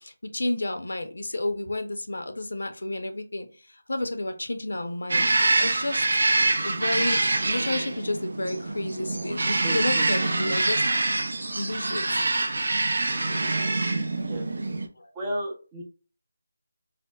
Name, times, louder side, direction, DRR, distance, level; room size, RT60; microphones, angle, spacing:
voice 1, 0.0-5.3 5.6-6.0 6.6-10.8 11.6-12.3 15.0-15.1, left 2 dB, 75° left, 7 dB, 0.6 m, -31 dB
sound 1, 5.1-14.9, right 2 dB, 65° right, 0.5 m, -25 dB
voice 2, 9.6-10.6 14.2-14.4 15.1-15.8, right 1 dB, 15° right, 0 dB, 0.5 m, -34 dB
4.1 x 2.0 x 2.3 m, 0.36 s
figure-of-eight pair, 170°, 0 cm